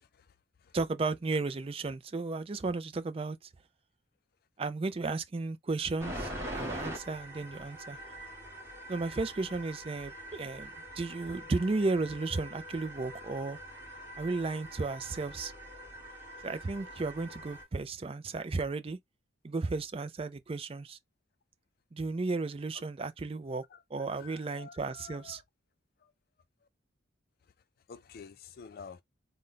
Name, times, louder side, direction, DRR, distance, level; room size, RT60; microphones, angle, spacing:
voice 1, 0.7-3.5 4.6-8.0 8.9-13.6 14.2-15.5 16.4-19.0 19.4-21.0 21.9-23.6 23.9-25.4, right 3 dB, 30° right, 0.4 m, -34 dB
sound 1, 6.0-17.6, equal, 15° right, 1.8 m, -44 dB
voice 2, 23.7-25.4 26.0-26.1 27.9-29.0, left 6 dB, 50° left, 0.4 m, -50 dB
3.8 x 2.2 x 3.7 m
head